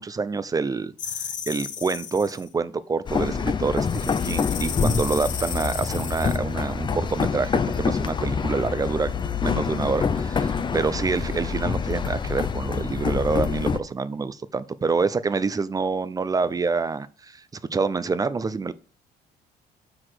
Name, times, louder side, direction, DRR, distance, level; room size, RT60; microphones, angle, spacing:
voice 1, 0.0-9.1 9.4-17.4 17.7-18.7, right 4 dB, 20° right, 0.5 m, -27 dB
sound 1, 1.0-2.5 3.8-6.4, left 8 dB, 50° left, 0.9 m, -34 dB
sound 2, 3.1-13.8, left 5 dB, 25° left, 0.6 m, -26 dB
6.0 x 4.8 x 6.1 m
cardioid pair, 110°, 17 cm